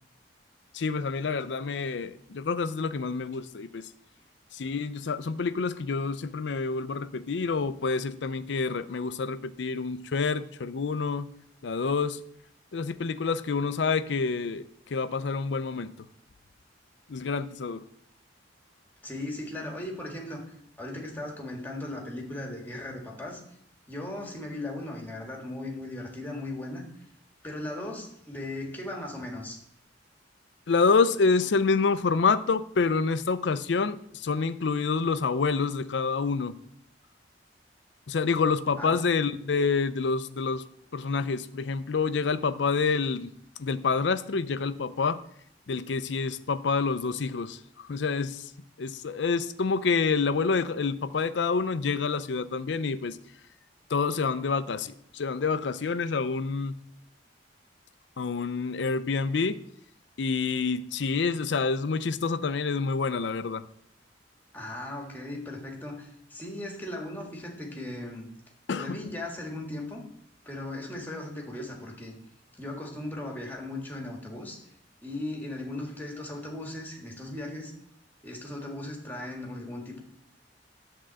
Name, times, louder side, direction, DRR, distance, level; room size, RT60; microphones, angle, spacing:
voice 1, 0.7-3.9 4.5-11.3 11.6-12.2 12.7-15.9 17.1-17.8 30.7-36.6 38.1-40.6 40.9-43.3 43.6-45.2 45.7-48.5 48.8-53.2 53.9-56.8 58.2-59.6 60.2-63.6 68.7-69.1, left 4 dB, 70° left, 13 dB, 0.5 m, -27 dB
voice 2, 19.0-20.4 20.8-23.4 23.9-26.8 27.4-29.6 38.8-39.0 64.5-68.3 68.8-70.0 70.5-72.1 72.6-74.6 75.0-77.7 78.2-80.0, left 1 dB, 10° left, 0 dB, 1.8 m, -37 dB
10.5 x 3.8 x 7.5 m, 0.71 s
head